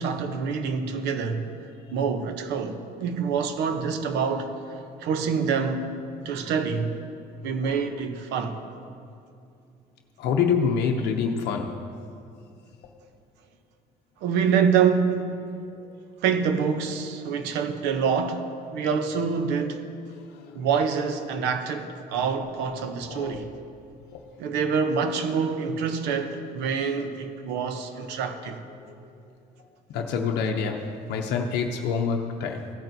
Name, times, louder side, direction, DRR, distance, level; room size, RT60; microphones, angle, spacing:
voice 1, 0.0-1.5 1.9-4.5 5.0-6.0 6.2-6.9 7.4-8.6 14.2-15.3 16.2-18.4 18.7-19.8 20.5-23.5 24.4-28.6, right 6 dB, 85° right, 0.8 m, -26 dB
voice 2, 10.2-11.9 20.5-20.6 23.1-23.3 24.1-24.2 28.9-29.0 29.9-32.7, left 6 dB, 80° left, 0.6 m, -26 dB
16.0 x 8.9 x 2.7 m
cardioid pair, 110°, 17 cm